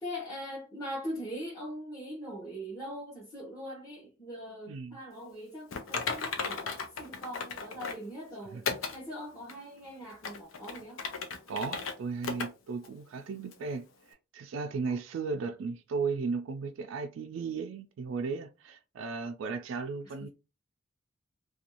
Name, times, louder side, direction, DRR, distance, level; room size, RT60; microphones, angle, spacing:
voice 1, 0.0-8.7 8.9-11.0 20.0-20.1, equal, 15° left, 0.9 m, -41 dB
Typing, 5.7-8.1 8.6-9.0 9.5-9.6 10.1-11.9 12.2-12.5 12.8-12.9 13.5-13.6, left 5 dB, 85° left, 0.5 m, -35 dB
voice 2, 11.5-20.3, right 4 dB, 75° right, 0.3 m, -35 dB
2.5 x 2.2 x 2.8 m
head